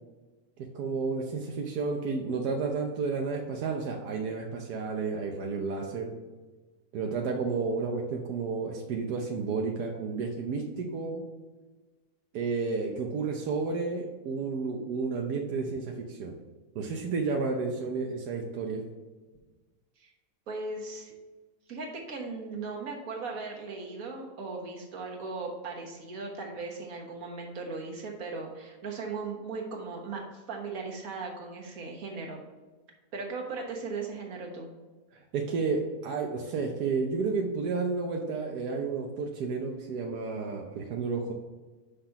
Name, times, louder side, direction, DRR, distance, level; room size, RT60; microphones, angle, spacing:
voice 1, 0.7-6.1 6.9-11.2 12.3-16.4 16.7-18.8 35.3-41.3, right 4 dB, 85° right, 1 dB, 1.4 m, -31 dB
voice 2, 20.5-21.1 21.7-30.2 30.5-32.4 33.1-34.7, right 4 dB, 65° right, 0 dB, 1.7 m, -38 dB
5.8 x 5.1 x 5.8 m, 1.3 s
omnidirectional pair, 1.7 m